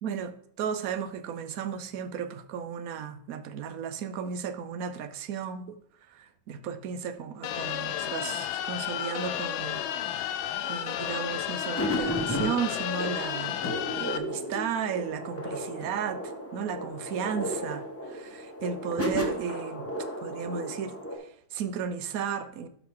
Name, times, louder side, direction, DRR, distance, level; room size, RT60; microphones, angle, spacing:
voice 1, 0.0-5.8 6.1-9.8 10.1-13.6 14.0-19.9 20.2-22.7, right 7 dB, 65° right, 10 dB, 0.9 m, -34 dB
sound 1, 7.4-14.2, left 11 dB, 85° left, 1.4 m, -32 dB
sound 2, 11.8-21.2, equal, 10° left, 0.9 m, -34 dB
sound 3, 13.6-14.7 15.0-17.4 17.7-18.6, left 3 dB, 60° left, 1.3 m, -47 dB
12.5 x 4.3 x 3.7 m, 0.65 s
omnidirectional pair, 2.1 m